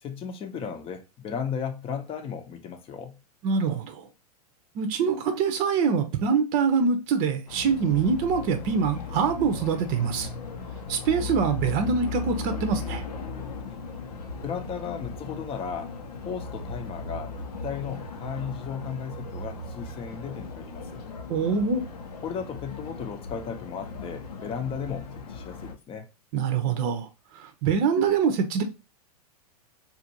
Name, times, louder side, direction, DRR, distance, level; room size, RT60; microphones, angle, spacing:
voice 1, 0.0-3.2 14.4-15.9 16.2-21.0 22.2-26.1, left 7 dB, 25° left, 0.7 m, -35 dB
voice 2, 3.4-4.0 4.8-10.3 10.9-13.0 21.3-21.8 26.3-27.1 27.3-28.6, right 5 dB, 40° right, 0.7 m, -24 dB
sound 1, 7.5-25.7, left 4 dB, 75° left, 0.7 m, -37 dB
4.2 x 2.6 x 2.8 m
hypercardioid pair, 100°, 20 cm